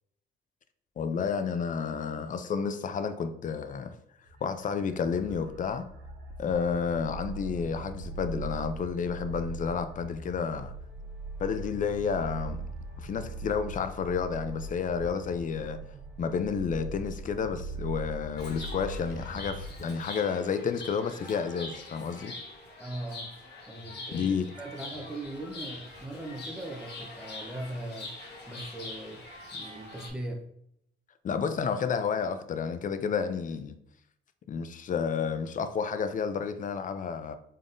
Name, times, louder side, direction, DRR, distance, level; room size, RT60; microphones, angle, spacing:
voice 1, 1.0-3.9 4.4-5.9 6.4-10.7 11.4-12.6 13.0-15.8 16.2-22.3 24.1-24.5 31.2-33.7 34.5-37.3, left 6 dB, 40° left, 0.4 m, -31 dB
sound 1, 4.2-19.8, right 2 dB, 70° right, 0.9 m, -40 dB
Chirp tweet, 18.4-30.1, left 2 dB, 60° left, 1.2 m, -44 dB
voice 2, 22.8-23.3 23.7-24.3 24.6-28.2 28.5-29.2 29.5-30.4, right 1 dB, 5° right, 0.7 m, -39 dB
3.7 x 3.6 x 2.5 m
cardioid pair, 90°, 20 cm